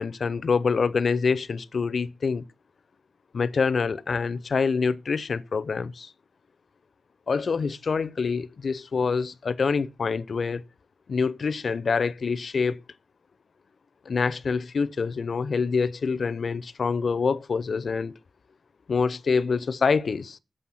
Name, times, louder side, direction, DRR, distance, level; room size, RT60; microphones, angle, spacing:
voice 1, 0.0-2.4 3.3-6.1 7.3-10.6 11.1-12.8 14.1-18.1 18.9-20.4, left 5 dB, 65° left, 0.5 m, -26 dB
7.6 x 6.1 x 5.6 m
wide cardioid pair, 90°, 0 cm